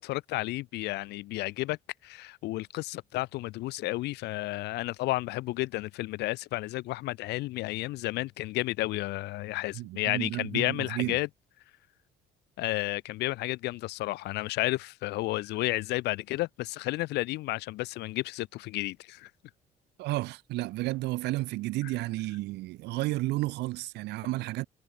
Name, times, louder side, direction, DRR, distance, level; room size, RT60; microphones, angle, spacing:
voice 1, 0.0-1.8 2.0-11.3 12.6-19.3, left 19 dB, 85° left, 1.2 m, -32 dB
voice 2, 9.7-11.2 20.0-24.7, right 19 dB, 85° right, 2.0 m, -32 dB
cardioid pair, 110°, 17 cm